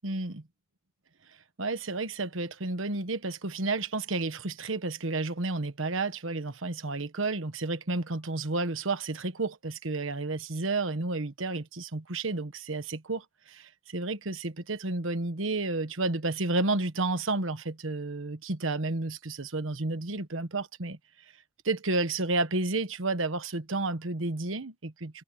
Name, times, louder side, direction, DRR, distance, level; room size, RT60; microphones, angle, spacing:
voice 1, 0.0-0.4 1.6-21.0 21.6-25.2, right 3 dB, 80° right, 1.3 m, -31 dB
head